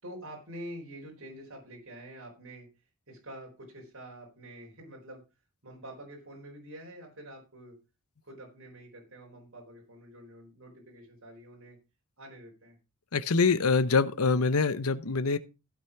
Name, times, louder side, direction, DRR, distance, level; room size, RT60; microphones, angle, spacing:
voice 1, 0.0-2.7 3.1-5.2 5.6-7.7 8.2-11.8 12.2-12.8, right 1 dB, 65° right, 4.2 m, -46 dB
voice 2, 13.1-15.4, left 4 dB, 90° left, 0.9 m, -25 dB
15.5 x 6.1 x 5.8 m
head